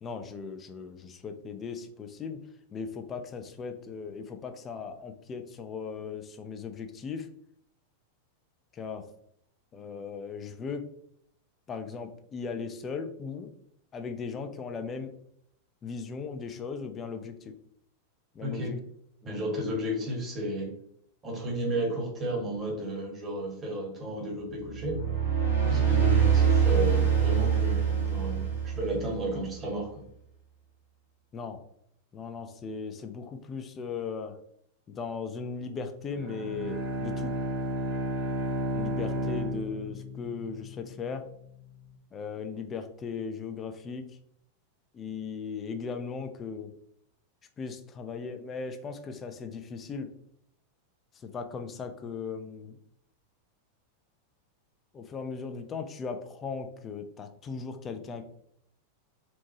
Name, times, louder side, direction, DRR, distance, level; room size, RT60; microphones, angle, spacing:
voice 1, 0.0-2.4 2.7-7.3 8.7-9.1 9.7-10.8 11.7-13.5 13.9-15.1 15.8-17.5 18.3-18.8 19.2-19.4 31.3-31.6 32.1-34.4 34.9-37.3 38.7-41.3 42.1-44.1 44.9-46.7 47.6-50.1 51.2-52.8 54.9-58.2, left 5 dB, 25° left, 6 dB, 0.4 m, -37 dB
voice 2, 18.4-18.7 19.2-20.7 21.2-25.0 25.6-30.0, right 1 dB, 25° right, -1 dB, 1.0 m, -33 dB
sound 1, 24.7-29.4, right 7 dB, 85° left, 0.8 m, -24 dB
Bowed string instrument, 36.1-40.9, equal, 65° right, 0.8 m, -32 dB
2.8 x 2.1 x 2.9 m, 0.70 s
figure-of-eight pair, 90°, 0 cm